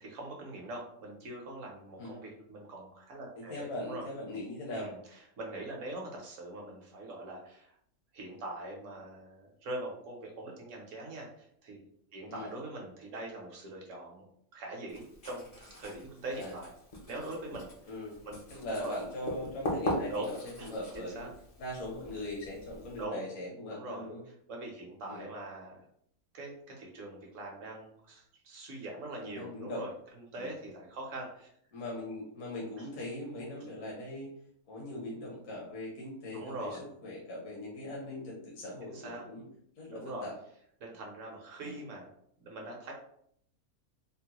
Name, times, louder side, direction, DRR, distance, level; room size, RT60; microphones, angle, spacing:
voice 1, 0.0-4.0 4.7-5.0 5.4-7.7 8.1-11.9 12.1-14.2 14.5-16.7 17.1-17.7 18.3-18.4 18.7-18.9 20.1-20.3 20.6-20.7 20.9-21.3 23.0-23.2 23.7-24.1 24.5-25.8 26.3-29.9 30.3-31.5 32.8-32.9 36.3-36.9 38.8-39.2 39.9-40.3 40.8-42.1 42.4-42.9, right 2 dB, 60° right, 0 dB, 1.1 m, -42 dB
voice 2, 3.4-4.9 12.3-12.5 16.3-16.6 17.9-18.2 18.5-21.3 21.6-24.2 25.0-25.3 29.2-29.8 30.4-30.6 31.7-34.3 34.7-39.4 39.8-40.3 41.6-41.8, left 1 dB, 65° left, -4 dB, 1.1 m, -40 dB
Writing, 14.9-23.0, left 1 dB, 50° left, 0.4 m, -41 dB
3.7 x 2.1 x 2.8 m, 0.68 s
omnidirectional pair, 1.5 m